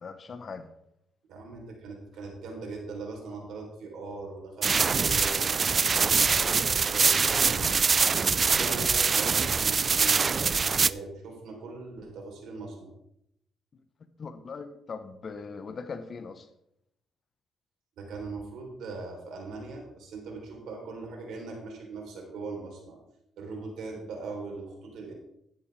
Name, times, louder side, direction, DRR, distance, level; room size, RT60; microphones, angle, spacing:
voice 1, 0.0-0.7 14.2-16.5, left 5 dB, 45° left, 1.1 m, -40 dB
voice 2, 1.3-7.7 8.2-12.9 18.0-23.0 23.4-25.1, right 3 dB, 75° right, 3.7 m, -40 dB
sound 1, 4.6-10.9, right 5 dB, 40° right, 0.3 m, -24 dB
12.5 x 10.0 x 3.5 m
cardioid pair, 90°, 0 cm